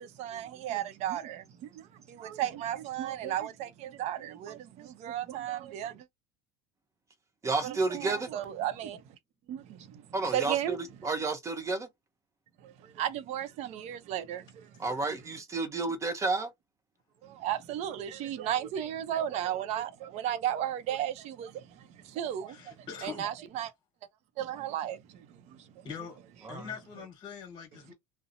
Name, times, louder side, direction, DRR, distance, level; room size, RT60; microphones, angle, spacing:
voice 1, 0.0-6.0 7.6-9.0 9.5-10.1 10.3-10.8 12.6-14.7 17.2-23.7 24.4-25.7, right 11 dB, 55° right, 0.6 m, -35 dB
voice 2, 7.4-8.3 10.1-11.9 14.8-16.5 26.4-26.7, right 3 dB, 20° right, 0.7 m, -31 dB
voice 3, 22.5-23.3 25.8-26.2 26.5-27.9, left 7 dB, 35° left, 1.2 m, -43 dB
2.7 x 2.0 x 2.6 m
supercardioid pair, 115°, 13 cm